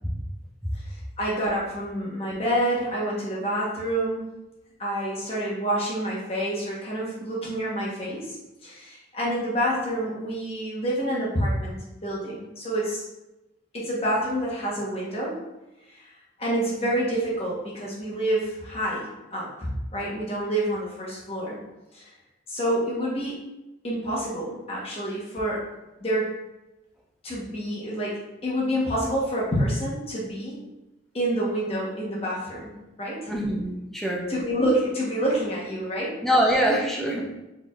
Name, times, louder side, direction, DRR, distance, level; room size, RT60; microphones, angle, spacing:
voice 1, 0.9-4.3 4.8-13.1 13.7-15.4 15.9-16.1 16.4-21.6 21.9-22.1 22.5-23.4 23.8-25.6 26.0-26.3 27.2-30.6 31.1-32.7 33.0-33.3 34.3-36.2, right 1 dB, 30° left, -5 dB, 1.0 m, -28 dB
voice 2, 33.3-34.3 36.2-37.3, equal, ahead, -3 dB, 0.5 m, -24 dB
4.1 x 3.4 x 2.4 m, 1.0 s
head